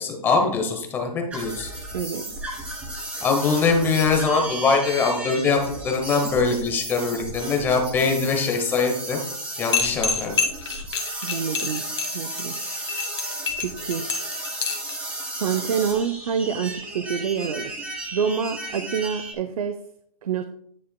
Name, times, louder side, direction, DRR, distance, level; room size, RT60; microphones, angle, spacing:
voice 1, 0.0-1.7 3.2-9.2 9.6-10.3, left 4 dB, 10° left, 3 dB, 0.8 m, -22 dB
sound 1, 1.3-19.3, right 1 dB, 5° right, 1.4 m, -34 dB
voice 2, 1.9-2.3 11.2-11.9 12.1-12.6 13.6-14.1 15.4-19.8 20.2-20.5, right 7 dB, 65° right, 9 dB, 0.6 m, -27 dB
sound 2, 9.7-14.9, left 5 dB, 50° left, 1.8 m, -26 dB
10.0 x 6.6 x 2.2 m, 0.66 s
hypercardioid pair, 155°, 20 cm